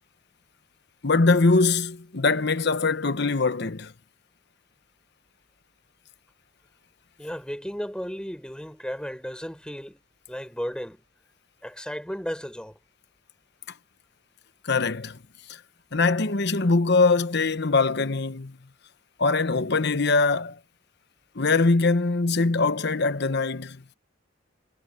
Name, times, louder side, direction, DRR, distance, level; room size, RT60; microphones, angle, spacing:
voice 1, 1.0-3.9 14.6-15.2 15.5-15.6 15.9-18.6 19.2-20.6 21.3-23.8, left 3 dB, 60° left, 1.1 m, -22 dB
voice 2, 7.2-10.0 10.3-11.0 11.6-12.8, equal, 5° left, 6.5 m, -34 dB
head